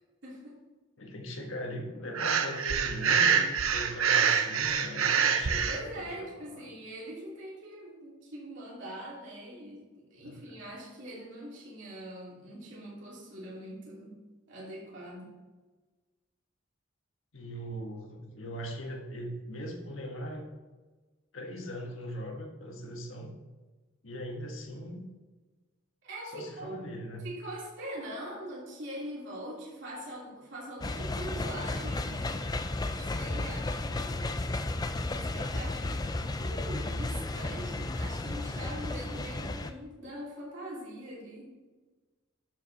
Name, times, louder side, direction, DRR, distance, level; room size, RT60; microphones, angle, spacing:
voice 1, 0.2-0.6 5.7-14.2 14.5-15.3 26.0-26.8 27.2-32.4 32.8-34.4 35.0-41.5, right 1 dB, 60° right, -6 dB, 3.0 m, -43 dB
voice 2, 1.0-6.7 10.2-10.6 17.3-20.4 21.3-23.3 24.0-25.0 26.3-27.3, equal, 75° left, 1 dB, 1.5 m, -40 dB
Breathing, 2.1-5.8, right 7 dB, 90° right, 0.8 m, -26 dB
sound 1, 30.8-39.7, left 2 dB, 20° left, 0.4 m, -33 dB
12.0 x 4.9 x 4.1 m, 1.3 s
head